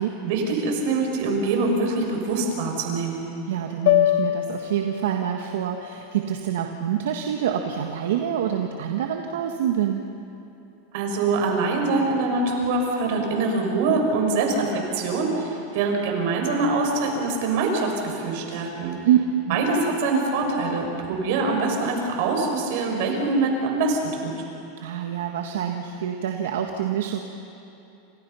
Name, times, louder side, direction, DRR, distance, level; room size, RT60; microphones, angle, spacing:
voice 1, 0.2-3.2 10.9-19.0 19.5-24.3, right 3 dB, 65° right, 2 dB, 6.5 m, -24 dB
voice 2, 3.5-10.1 19.0-19.2 19.4-19.6 24.8-27.2, right 10 dB, 85° right, 3 dB, 1.7 m, -26 dB
sound 1, 3.9-8.1, left 14 dB, 70° left, 1.3 m, -27 dB
29.0 x 27.0 x 5.7 m, 2.7 s
supercardioid pair, 140°, 0 cm